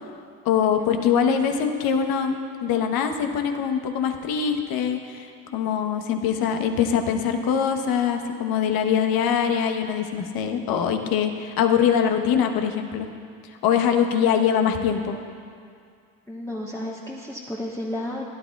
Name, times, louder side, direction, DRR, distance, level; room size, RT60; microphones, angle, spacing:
voice 1, 0.4-13.1 13.6-15.2, left 7 dB, 60° left, 5 dB, 1.1 m, -23 dB
voice 2, 16.3-18.2, left 1 dB, 5° left, -5 dB, 1.3 m, -32 dB
16.5 x 11.5 x 2.3 m, 2.3 s
hypercardioid pair, 60°, 41 cm